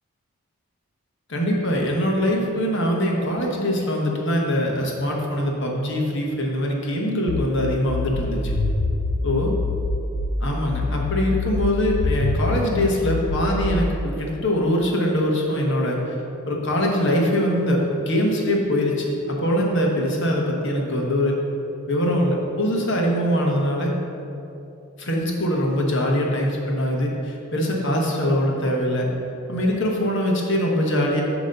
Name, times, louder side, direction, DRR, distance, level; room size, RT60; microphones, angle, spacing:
voice 1, 1.3-8.5 9.2-9.5 10.4-16.0 16.4-21.4 21.9-23.9 25.0-29.1 29.5-31.2, equal, 55° left, -1 dB, 1.1 m, -22 dB
sound 1, 7.3-10.3 10.7-13.7, left 3 dB, 85° left, 0.5 m, -25 dB
9.1 x 3.0 x 6.6 m, 2.9 s
head